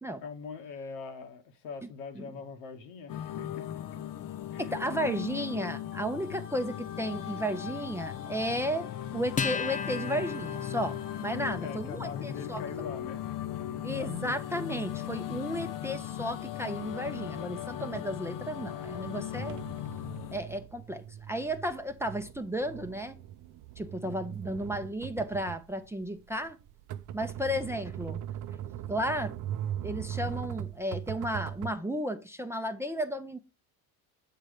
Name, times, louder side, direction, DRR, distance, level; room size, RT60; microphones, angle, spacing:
voice 1, 0.2-4.0 4.5-4.8 11.6-13.2 13.5-14.8 24.0-24.4, left 5 dB, 70° left, 1.4 m, -43 dB
sound 1, 3.1-20.4, left 11 dB, 45° left, 0.8 m, -38 dB
voice 2, 4.6-12.6 13.8-19.6 20.3-23.1 23.8-26.6 27.1-28.2 28.9-29.3 29.8-33.4, equal, 5° right, 0.7 m, -34 dB
Acoustic guitar, 9.4-16.2, left 6 dB, 20° left, 0.4 m, -39 dB
sound 2, 19.4-31.8, right 10 dB, 45° right, 0.6 m, -40 dB
7.4 x 4.6 x 4.9 m
hypercardioid pair, 75°, 46 cm